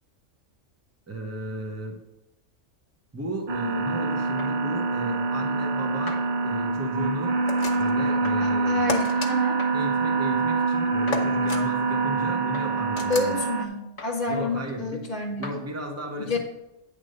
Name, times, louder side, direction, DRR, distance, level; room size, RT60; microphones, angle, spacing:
voice 1, 1.1-2.0 3.1-7.4 7.8-8.8 9.7-13.4 14.3-15.0 15.4-16.4, right 1 dB, 15° right, 2 dB, 0.9 m, -34 dB
sound 1, 3.5-13.7, right 3 dB, 50° right, 0.6 m, -25 dB
sound 2, 4.4-4.5 6.1-6.3 8.2-8.4 9.6-9.8 11.1-11.2 12.5-12.7 14.0-14.2 15.4-15.6, left 3 dB, 20° left, 1.2 m, -39 dB
sound 3, 7.5-8.0 8.9-9.3 11.1-11.6 13.0-13.3, left 4 dB, 85° left, 1.4 m, -32 dB
voice 2, 8.4-9.6 13.1-15.5 16.2-16.4, left 2 dB, 35° left, 0 dB, 1.0 m, -29 dB
9.4 x 3.7 x 6.5 m, 0.91 s
omnidirectional pair, 1.3 m